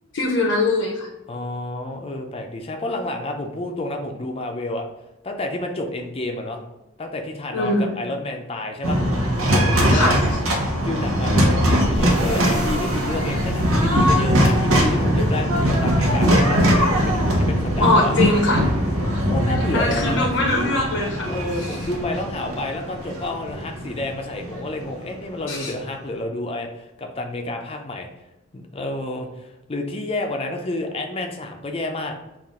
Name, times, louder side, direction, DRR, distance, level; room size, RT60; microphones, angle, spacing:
voice 1, 0.1-1.1 7.5-8.0 9.9-10.1 17.8-18.6 19.7-21.3 21.6-21.8 25.5-25.7, left 2 dB, 80° left, 0 dB, 0.7 m, -21 dB
voice 2, 1.3-4.9 5.2-6.6 7.0-9.0 9.5-10.2 10.8-18.2 19.2-20.3 21.3-28.1 28.5-32.2, left 2 dB, 30° left, 3 dB, 0.5 m, -29 dB
sound 1, 8.8-25.1, equal, 90° right, 0.9 m, -21 dB
5.7 x 2.5 x 3.6 m, 0.99 s
head